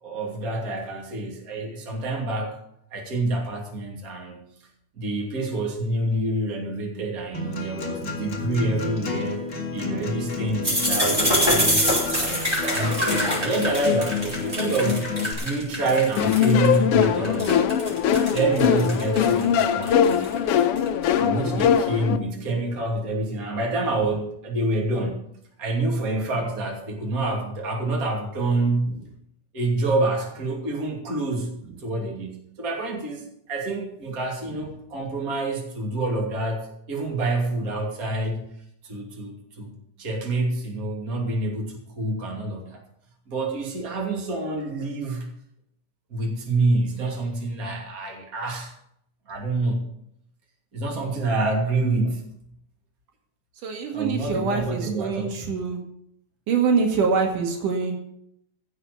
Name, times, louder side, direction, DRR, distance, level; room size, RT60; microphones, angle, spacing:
voice 1, 0.0-2.6 2.9-4.4 4.9-9.4 9.7-13.1 13.4-15.1 15.4-17.8 18.3-20.5 21.2-25.3 25.6-28.9 29.5-31.5 31.8-38.4 38.8-39.7 40.0-42.8 43.3-45.3 46.1-48.7 49.3-49.8 50.7-52.3 53.9-55.4, right 2 dB, 30° right, 0 dB, 2.8 m, -27 dB
Acoustic guitar, 7.3-15.3, left 4 dB, 40° left, 2.4 m, -30 dB
sound 1, 10.6-16.7 17.0-20.9, equal, 10° right, 5.2 m, -25 dB
sound 2, 16.2-22.2, left 8 dB, 75° left, 1.3 m, -21 dB
voice 2, 53.6-55.8 56.5-57.9, right 5 dB, 80° right, 3 dB, 3.5 m, -25 dB
15.0 x 6.7 x 7.0 m, 0.73 s
omnidirectional pair, 3.6 m